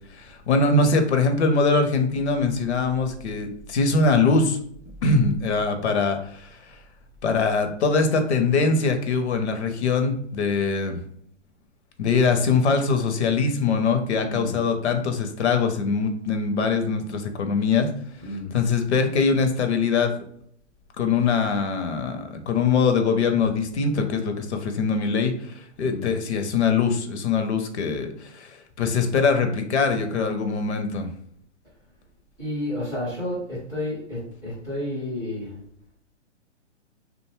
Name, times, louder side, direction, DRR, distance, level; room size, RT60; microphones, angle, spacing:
voice 1, 0.1-4.6 5.0-6.6 7.2-11.0 12.0-17.9 18.3-20.1 21.0-31.1, left 4 dB, 65° left, 6 dB, 0.6 m, -22 dB
voice 2, 14.2-14.6 18.2-18.6 25.8-26.2 32.4-35.6, left 1 dB, 5° right, -9 dB, 0.3 m, -31 dB
2.6 x 2.2 x 3.0 m, 0.66 s
hypercardioid pair, 130°, 36 cm